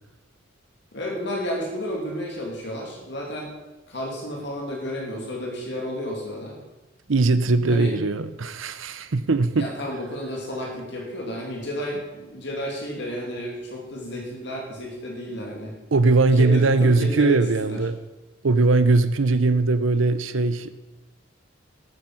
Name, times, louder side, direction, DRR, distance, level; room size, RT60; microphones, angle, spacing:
voice 1, 0.9-3.5 3.9-6.6 7.7-7.9 9.6-15.7 16.4-17.8, equal, 60° left, 2.5 m, -32 dB
voice 2, 7.1-9.7 15.9-18.0 18.4-20.7, right 3 dB, 85° right, 0.7 m, -20 dB
12.0 x 9.5 x 5.6 m
head